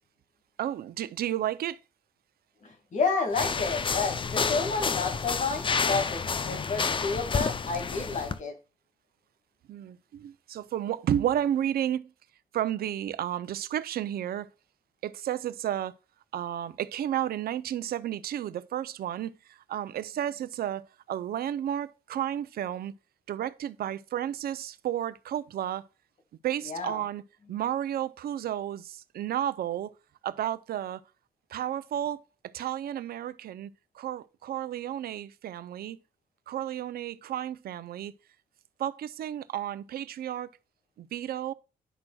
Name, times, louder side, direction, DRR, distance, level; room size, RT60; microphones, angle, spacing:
voice 1, 0.6-1.8 9.7-12.1 12.5-14.5 15.0-15.9 16.3-22.9 23.3-25.8 26.4-27.2 27.5-29.9 30.2-31.0 31.5-32.2 32.5-33.7 33.9-36.0 36.5-38.1 38.8-40.5 41.0-41.5, right 11 dB, 90° right, 0.6 m, -32 dB
voice 2, 2.6-8.5 26.6-27.0, left 4 dB, 55° left, 2.2 m, -30 dB
sound 1, 3.3-8.4, left 5 dB, 35° left, 0.6 m, -29 dB
10.0 x 6.2 x 2.3 m
cardioid pair, 105°, 15 cm